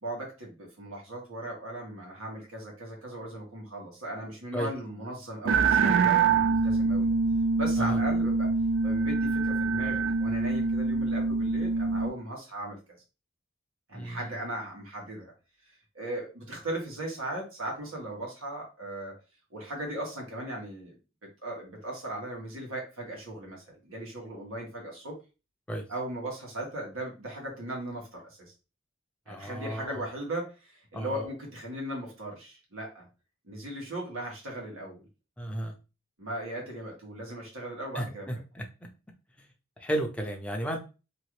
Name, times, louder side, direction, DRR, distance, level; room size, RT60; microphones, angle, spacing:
voice 1, 0.0-7.1 7.5-8.5 8.8-12.8 13.9-15.3 15.9-19.1 19.5-20.9 21.4-25.1 25.9-28.5 29.3-33.1 33.4-35.0 36.2-38.4, right 1 dB, 85° right, -1 dB, 1.4 m, -38 dB
sound 1, 5.5-12.1, right 4 dB, 65° right, 0.3 m, -25 dB
voice 2, 29.3-30.0 30.9-31.3 35.4-35.7 37.9-38.6 39.8-40.8, right 1 dB, 5° left, 1 dB, 0.5 m, -33 dB
2.9 x 2.5 x 3.1 m, 0.31 s
head